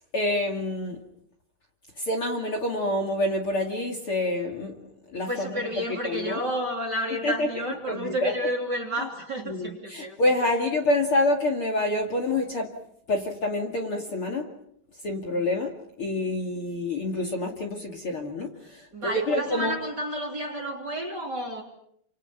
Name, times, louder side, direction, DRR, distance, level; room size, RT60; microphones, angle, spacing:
voice 1, 0.1-1.0 2.0-5.6 6.0-6.4 7.2-7.5 7.9-8.3 9.5-12.7 13.1-14.5 15.0-15.7 16.0-19.8, left 2 dB, 40° left, 3 dB, 2.8 m, -27 dB
voice 2, 5.3-10.2 18.9-21.6, equal, 30° right, 2 dB, 3.4 m, -31 dB
29.5 x 27.0 x 5.9 m, 0.71 s
omnidirectional pair, 4.4 m